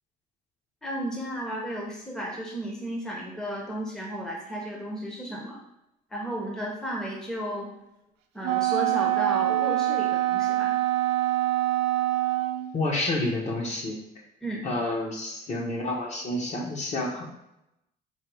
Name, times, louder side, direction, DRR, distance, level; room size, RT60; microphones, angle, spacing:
voice 1, 0.8-5.6 6.1-7.7 8.3-10.8 14.4-14.7, right 1 dB, 5° left, -2 dB, 0.8 m, -33 dB
Wind instrument woodwind instrument, 8.4-12.7, right 15 dB, 85° right, 0.5 m, -25 dB
voice 2, 12.7-14.0 14.6-17.2, left 2 dB, 45° left, -1 dB, 1.1 m, -29 dB
4.6 x 2.2 x 4.7 m, 0.85 s
cardioid pair, 110°, 17 cm